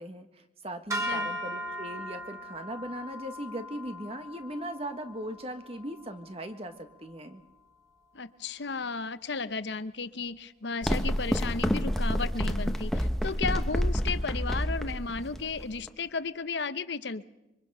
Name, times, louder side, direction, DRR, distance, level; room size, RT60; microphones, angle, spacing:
voice 1, 0.0-7.4, right 1 dB, 35° right, 7 dB, 1.4 m, -39 dB
sound 1, 0.9-7.3, equal, 15° right, 3.8 m, -39 dB
voice 2, 1.0-1.3 8.1-17.3, left 4 dB, 75° left, 13 dB, 0.8 m, -34 dB
sound 2, 10.8-15.9, equal, ahead, 0.9 m, -29 dB
25.5 x 24.0 x 5.6 m, 0.99 s
head